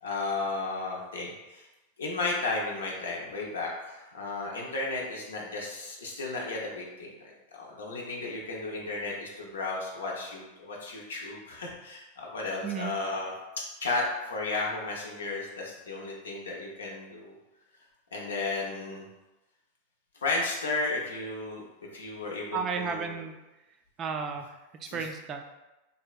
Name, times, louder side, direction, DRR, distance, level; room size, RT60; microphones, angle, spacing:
voice 1, 0.0-1.7 2.0-17.4 18.1-19.1 20.2-21.6 21.9-23.2 24.9-25.0, left 3 dB, 90° left, -2 dB, 0.5 m, -34 dB
voice 2, 12.6-12.9 22.5-23.4 24.0-24.5 24.8-25.5, right 5 dB, 35° right, 5 dB, 0.3 m, -33 dB
2.7 x 2.1 x 2.3 m, 1.0 s
hypercardioid pair, 105°, 0 cm